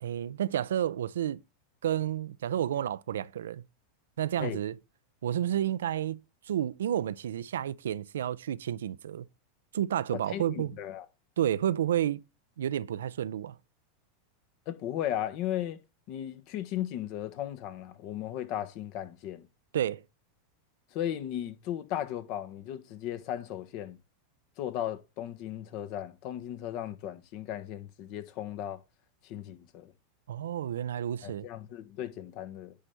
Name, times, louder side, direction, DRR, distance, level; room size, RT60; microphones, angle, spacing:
voice 1, 0.0-1.4 1.8-3.6 4.2-4.8 5.2-6.2 6.5-9.3 9.7-10.7 11.4-12.2 12.6-13.6 19.7-20.0 30.3-31.5, right 11 dB, 75° right, 0.4 m, -30 dB
voice 2, 10.3-11.0 14.7-15.8 16.1-19.5 20.9-24.0 24.6-28.8 29.2-29.9 31.2-32.7, left 11 dB, 55° left, 1.2 m, -36 dB
10.0 x 4.4 x 5.2 m
hypercardioid pair, 95°, 0 cm